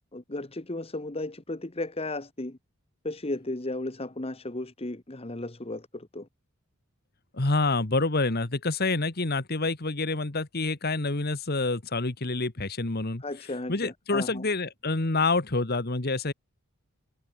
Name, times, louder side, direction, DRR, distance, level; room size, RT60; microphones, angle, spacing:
voice 1, 0.1-2.6 3.0-6.3 13.2-14.4, left 2 dB, 25° left, 1.2 m, -35 dB
voice 2, 7.3-13.2 13.7-16.3, left 3 dB, 45° left, 1.6 m, -27 dB
head